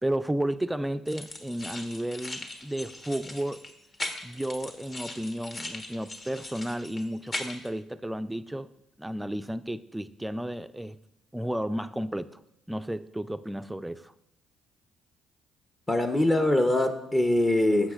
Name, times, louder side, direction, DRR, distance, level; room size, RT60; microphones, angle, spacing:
voice 1, 0.0-3.7 4.2-8.7 9.0-11.0 11.3-12.4 12.7-14.1, right 1 dB, 5° right, 0.3 m, -32 dB
sound 1, 1.1-7.7, left 2 dB, 35° left, 1.2 m, -39 dB
voice 2, 15.9-17.9, left 1 dB, 20° left, 0.7 m, -23 dB
11.5 x 7.5 x 2.4 m
supercardioid pair, 65°, 0 cm